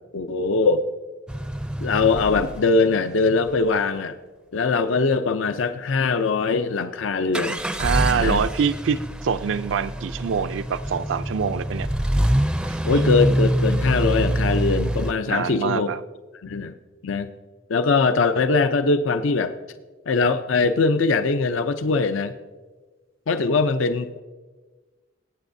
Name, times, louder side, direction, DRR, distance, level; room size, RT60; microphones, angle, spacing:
voice 1, 0.1-0.8 1.8-4.2 4.5-7.6 8.2-8.4 12.8-15.9 16.4-16.7 17.0-17.3 17.7-19.5 20.1-22.3 23.3-24.2, left 4 dB, 85° left, 9 dB, 0.5 m, -21 dB
sound 1, 1.3-3.6 7.3-15.1, right 1 dB, 5° right, 0.4 m, -25 dB
voice 2, 7.8-11.9 12.6-13.2 15.3-16.0, right 6 dB, 75° right, 11 dB, 0.4 m, -25 dB
22.5 x 9.1 x 2.7 m, 1.3 s
head